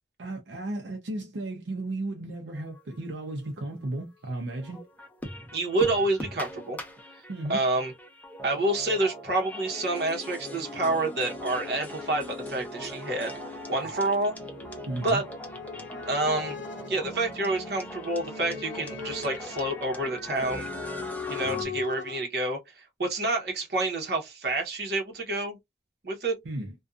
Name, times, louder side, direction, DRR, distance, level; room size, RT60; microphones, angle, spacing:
voice 1, 0.2-4.8 7.3-7.6 14.9-15.2 21.4-21.7 26.4-26.7, right 2 dB, 85° right, 0.6 m, -34 dB
sound 1, 2.5-3.9 4.4-21.6, left 1 dB, 10° left, 0.4 m, -41 dB
voice 2, 5.5-6.8 7.5-7.9 8.4-14.3 15.0-15.2 16.0-16.6 16.9-20.7 21.3-25.6 26.0-26.4, right 2 dB, 60° right, 0.9 m, -28 dB
sound 2, 11.6-22.2, left 5 dB, 80° left, 0.7 m, -41 dB
2.6 x 2.2 x 2.4 m
head